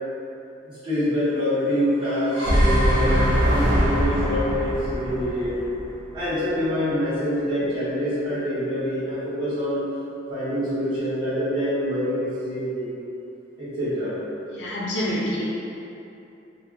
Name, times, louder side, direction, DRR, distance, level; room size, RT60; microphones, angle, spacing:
voice 1, 0.8-5.6 6.1-9.8 10.3-12.9 13.6-14.2, equal, 25° right, -17 dB, 1.5 m, -25 dB
sound 1, 2.1-6.3, equal, 80° right, 0.7 m, -22 dB
voice 2, 14.5-15.5, equal, 70° left, -5 dB, 0.6 m, -27 dB
3.4 x 2.5 x 2.7 m, 2.8 s
head